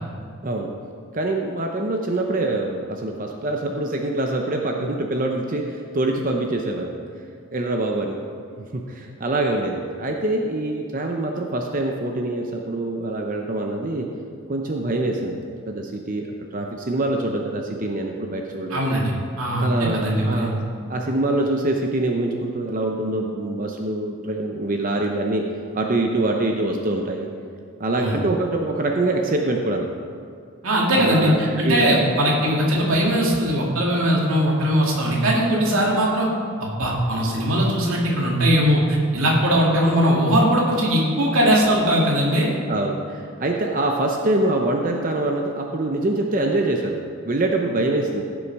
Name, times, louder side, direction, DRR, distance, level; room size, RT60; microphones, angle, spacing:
voice 1, 1.1-6.9 7.5-8.2 8.6-14.1 14.5-18.8 19.6-20.6 20.9-25.4 25.7-27.3 27.8-29.9 30.9-32.1 42.7-47.0 47.2-48.2, right 2 dB, 40° right, 2 dB, 0.7 m, -24 dB
voice 2, 18.7-20.5 28.0-28.2 30.6-36.3 36.6-42.5, equal, 75° right, -3 dB, 2.3 m, -20 dB
16.0 x 7.1 x 4.7 m, 2.2 s
head